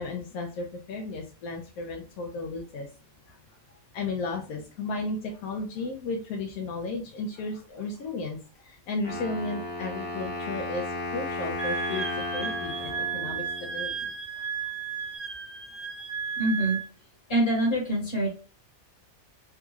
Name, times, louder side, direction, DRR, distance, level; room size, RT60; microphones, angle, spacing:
voice 1, 0.0-2.9 3.3-3.4 3.9-14.7, left 3 dB, 85° left, 1 dB, 1.1 m, -34 dB
Wind instrument woodwind instrument, 9.0-14.0, left 2 dB, 20° left, 0.8 m, -35 dB
Wind instrument woodwind instrument 2, 11.6-16.9, right 6 dB, 45° right, 0.5 m, -34 dB
voice 2, 16.4-16.8 17.3-18.3, right 1 dB, 45° left, 0 dB, 1.3 m, -25 dB
3.5 x 2.3 x 3.0 m, 0.38 s
omnidirectional pair, 1.5 m